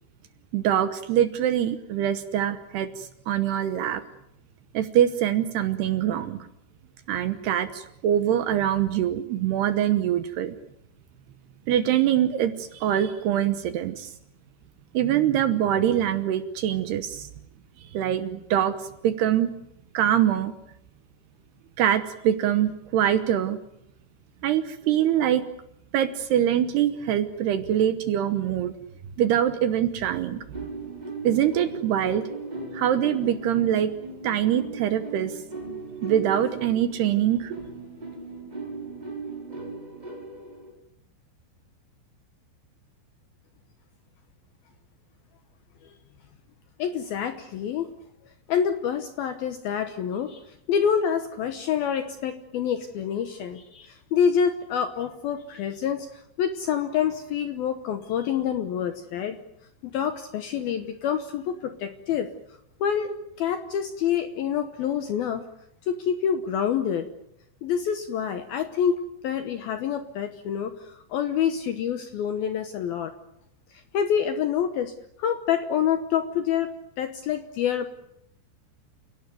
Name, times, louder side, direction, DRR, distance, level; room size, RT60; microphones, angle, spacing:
voice 1, 0.5-4.0 4.7-6.5 7.1-10.6 11.7-14.1 14.9-17.3 17.8-19.5 19.9-20.5 21.8-23.6 24.4-25.4 25.9-28.8 29.2-30.4 31.2-32.2 32.7-33.9 34.2-35.3 36.0-37.6, right 10 dB, 70° right, 10 dB, 2.7 m, -24 dB
sound 1, 30.5-40.7, right 3 dB, 10° right, 4.3 m, -38 dB
voice 2, 46.8-47.9 48.5-59.4 59.8-62.3 62.8-65.4 65.9-67.1 67.6-73.1 73.7-74.9 75.2-77.9, left 8 dB, 70° left, 9 dB, 2.3 m, -27 dB
29.5 x 17.5 x 9.3 m, 0.80 s
omnidirectional pair, 5.6 m